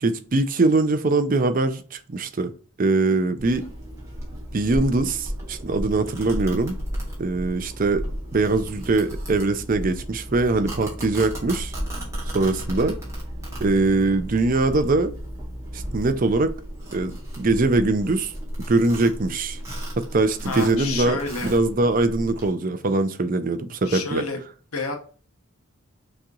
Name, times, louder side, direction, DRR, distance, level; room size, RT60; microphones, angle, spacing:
voice 1, 0.0-2.5 2.8-3.6 4.5-6.8 7.2-8.1 8.3-11.7 12.3-13.0 13.6-15.1 15.7-16.5 16.9-17.1 17.4-18.3 18.7-19.6 20.0-24.2, right 3 dB, 40° right, 0.5 m, -22 dB
Domestic sounds home sounds, 3.4-22.5, equal, 15° right, 1.6 m, -34 dB
voice 2, 20.4-21.5 23.8-24.4 24.7-25.0, left 4 dB, 90° left, 1.1 m, -29 dB
6.2 x 3.0 x 2.4 m
head